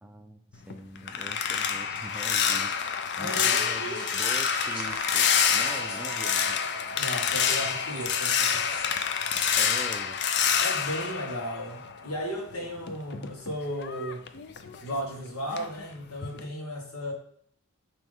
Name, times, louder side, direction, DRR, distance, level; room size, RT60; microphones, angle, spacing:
voice 1, 0.0-2.8 3.2-6.6 9.6-10.2, right 1 dB, 5° right, 5 dB, 0.4 m, -43 dB
sound 1, 0.5-12.2 12.5-15.2 15.5-15.8 16.2-16.5, left 7 dB, 50° left, 0.5 m, -27 dB
voice 2, 3.2-4.1 7.0-8.7 10.6-14.2 14.8-17.1, equal, 80° left, 0 dB, 1.7 m, -35 dB
sound 2, 3.6-10.6, right 6 dB, 85° right, 0.4 m, -44 dB
sound 3, 3.9-6.5 7.0-9.7, left 1 dB, 25° left, 2.4 m, -47 dB
8.9 x 3.0 x 3.6 m, 0.63 s
head